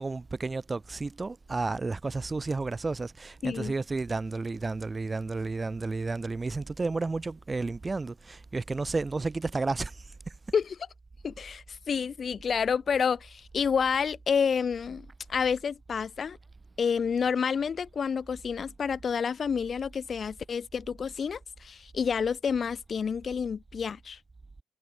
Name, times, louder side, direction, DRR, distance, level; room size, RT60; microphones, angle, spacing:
voice 1, 0.0-9.9, right 3 dB, 25° right, 1.2 m, -32 dB
voice 2, 3.4-3.7 10.5-10.8 11.2-16.4 16.8-24.2, left 6 dB, 45° left, 2.3 m, -29 dB
cardioid pair, 90°, 0 cm